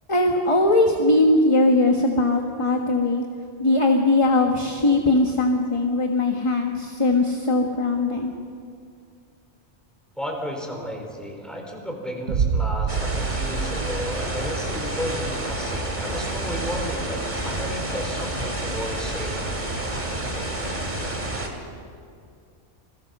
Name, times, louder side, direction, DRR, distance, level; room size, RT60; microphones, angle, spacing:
voice 1, 0.1-3.2 3.6-8.3, left 2 dB, 25° left, 2 dB, 1.5 m, -20 dB
voice 2, 10.1-19.4, equal, ahead, 1 dB, 4.3 m, -33 dB
Boom, 12.3-15.2, right 6 dB, 85° right, 1.1 m, -27 dB
sound 1, 12.9-21.5, right 1 dB, 40° right, 2.8 m, -29 dB
29.0 x 22.0 x 5.4 m, 2.4 s
omnidirectional pair, 1.2 m